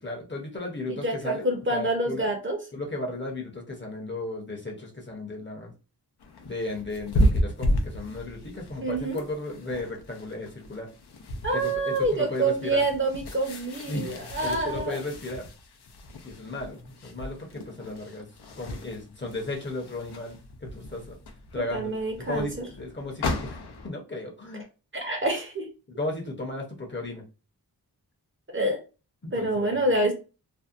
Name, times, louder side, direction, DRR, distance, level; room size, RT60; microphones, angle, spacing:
voice 1, 0.0-2.3 2.7-5.7 6.4-10.9 11.5-12.8 13.8-15.5 16.2-18.3 18.6-21.2 21.5-21.9 22.2-23.6 23.8-24.7 25.9-27.3 29.2-29.9, left 2 dB, 30° left, 0 dB, 0.7 m, -35 dB
voice 2, 0.9-2.6 8.8-9.2 11.4-15.0 21.5-22.6 24.5-24.6 24.9-25.7 28.5-28.8 29.3-30.1, right 2 dB, 30° right, 3 dB, 0.6 m, -27 dB
sound 1, 6.2-23.9, equal, 80° left, 0.5 m, -33 dB
2.6 x 2.1 x 2.4 m, 0.32 s
wide cardioid pair, 75°, 38 cm